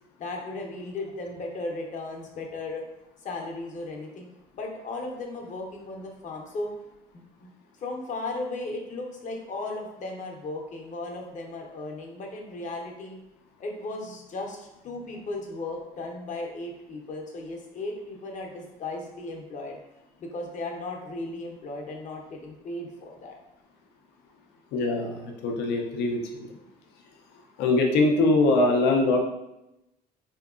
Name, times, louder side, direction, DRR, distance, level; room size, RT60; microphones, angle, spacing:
voice 1, 0.2-2.8 3.2-4.3 4.5-6.7 7.1-7.5 7.8-13.2 13.6-19.8 20.2-23.4, left 2 dB, 45° left, 1 dB, 0.8 m, -36 dB
voice 2, 24.7-26.5 27.6-29.2, left 2 dB, 85° left, 2 dB, 0.6 m, -23 dB
3.6 x 2.8 x 2.4 m, 0.90 s
cardioid pair, 110°, 17 cm